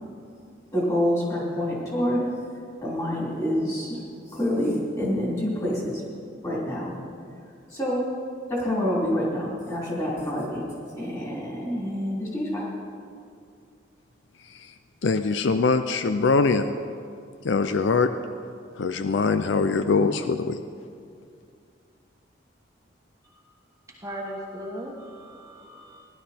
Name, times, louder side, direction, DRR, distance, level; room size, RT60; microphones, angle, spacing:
voice 1, 0.7-2.3 2.8-4.0 4.3-6.0 6.4-6.9 7.7-8.0 8.5-12.6, equal, 15° left, -5 dB, 3.2 m, -27 dB
voice 2, 15.0-16.7 17.4-18.1 18.8-20.6, left 4 dB, 70° left, 10 dB, 0.5 m, -22 dB
voice 3, 24.0-26.1, equal, 15° right, -2 dB, 1.2 m, -38 dB
16.5 x 11.5 x 4.3 m, 2.3 s
head